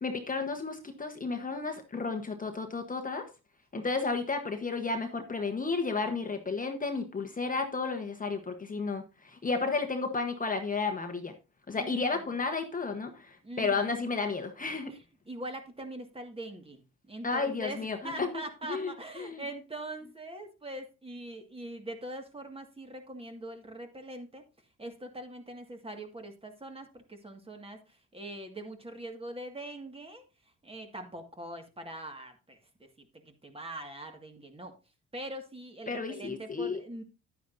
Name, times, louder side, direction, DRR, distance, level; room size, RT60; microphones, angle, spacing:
voice 1, 0.0-3.3 3.7-11.3 11.7-14.9 17.2-18.4 18.7-19.4 35.9-36.8, left 4 dB, 25° left, 6 dB, 1.1 m, -32 dB
voice 2, 11.8-12.2 13.4-14.0 14.9-16.8 17.1-24.4 24.8-30.2 30.6-34.7 35.1-37.0, right 1 dB, 20° right, 5 dB, 1.8 m, -42 dB
10.0 x 9.3 x 2.6 m, 0.29 s
cardioid pair, 90°, 30 cm